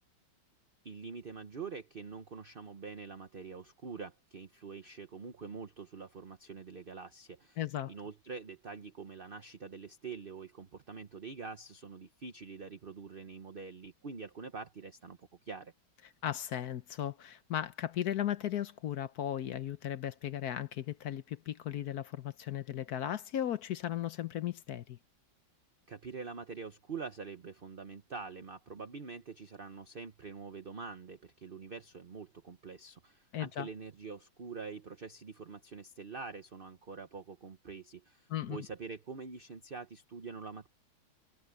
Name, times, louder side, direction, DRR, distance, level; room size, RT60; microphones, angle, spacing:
voice 1, 0.8-7.6 7.9-15.7 25.9-40.7, right 5 dB, 40° right, 0.8 m, -45 dB
voice 2, 7.6-7.9 16.2-25.0 33.3-33.7 38.3-38.6, left 11 dB, 60° left, 1.1 m, -36 dB
omnidirectional pair, 2.2 m